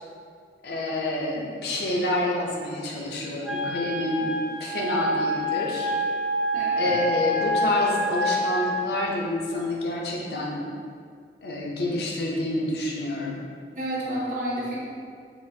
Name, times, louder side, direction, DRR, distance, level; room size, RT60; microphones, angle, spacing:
voice 1, 0.6-5.9 6.8-10.7 11.4-13.4, left 1 dB, 60° left, -2 dB, 0.5 m, -28 dB
Wind instrument woodwind instrument, 3.4-8.8, left 1 dB, 5° right, 0.3 m, -27 dB
voice 2, 6.5-7.0 13.8-14.8, right 1 dB, 45° right, -5 dB, 0.7 m, -30 dB
3.8 x 2.5 x 2.6 m, 2.2 s
head